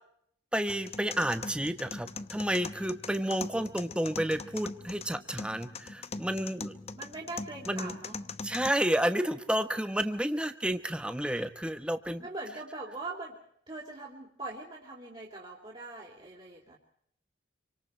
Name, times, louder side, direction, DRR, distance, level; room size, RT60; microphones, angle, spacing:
voice 1, 0.5-6.7 7.7-7.9 8.4-12.2, right 1 dB, 5° right, 9 dB, 1.2 m, -31 dB
sound 1, 0.7-8.7, left 4 dB, 35° left, 0.8 m, -42 dB
voice 2, 7.0-8.2 12.2-13.4 13.7-16.8, right 2 dB, 30° right, -4 dB, 3.5 m, -42 dB
27.5 x 25.0 x 4.5 m, 0.67 s
head